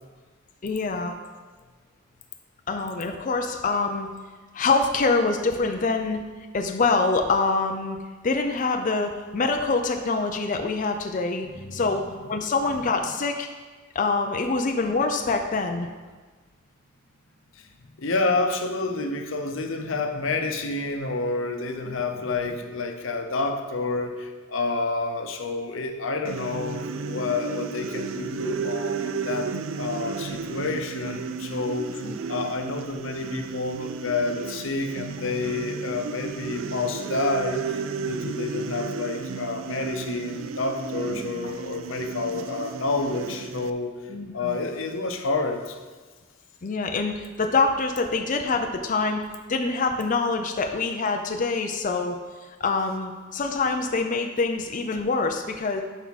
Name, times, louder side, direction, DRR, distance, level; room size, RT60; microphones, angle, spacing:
voice 1, 0.6-1.1 2.7-4.1 4.5-6.2 6.5-8.0 8.2-13.5 13.9-15.9 21.9-22.0 32.0-32.2 41.1-41.5 42.3-42.4 44.1-44.6 46.6-49.2 49.5-52.2 52.6-55.8, left 3 dB, 40° left, 4 dB, 0.5 m, -25 dB
voice 2, 11.6-11.9 17.6-17.7 18.0-32.0 32.3-43.9 44.3-45.8, left 3 dB, 90° left, 5 dB, 0.8 m, -29 dB
sound 1, 26.2-43.7, right 5 dB, 80° right, 0.4 m, -33 dB
11.5 x 4.6 x 4.1 m, 1.4 s
head